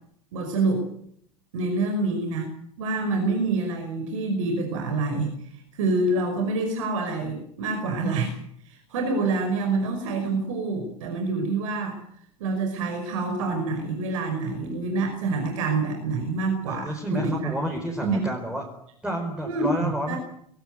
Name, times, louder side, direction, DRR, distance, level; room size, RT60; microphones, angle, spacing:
voice 1, 0.3-0.8 1.5-2.5 2.8-5.3 5.8-8.3 8.7-12.0 12.4-17.5 18.0-18.3 19.4-20.2, right 3 dB, 60° right, 4 dB, 5.5 m, -26 dB
voice 2, 16.7-18.7 19.0-20.2, right 1 dB, 5° right, 1 dB, 4.8 m, -30 dB
22.0 x 18.0 x 9.3 m, 0.69 s
figure-of-eight pair, 85°, 18 cm